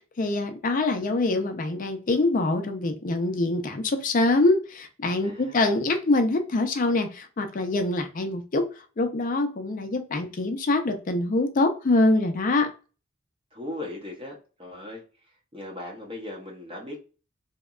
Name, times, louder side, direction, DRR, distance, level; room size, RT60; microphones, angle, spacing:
voice 1, 0.2-8.7 9.0-12.7, left 2 dB, 40° left, 6 dB, 0.5 m, -24 dB
voice 2, 5.2-5.6 13.5-15.0 15.5-17.0, left 1 dB, 25° right, -1 dB, 0.7 m, -38 dB
2.7 x 2.1 x 2.3 m, 0.34 s
head